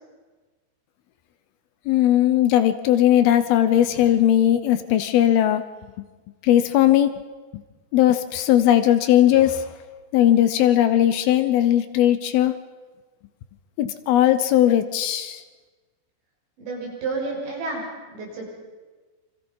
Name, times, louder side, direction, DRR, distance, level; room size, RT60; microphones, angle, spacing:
voice 1, 1.9-5.6 6.4-7.1 7.9-9.7 10.1-12.6 13.8-15.4, left 12 dB, 75° left, 11 dB, 2.4 m, -18 dB
voice 2, 16.6-18.5, right 3 dB, 80° right, -2 dB, 8.7 m, -30 dB
29.0 x 25.5 x 5.5 m, 1.3 s
omnidirectional pair, 5.0 m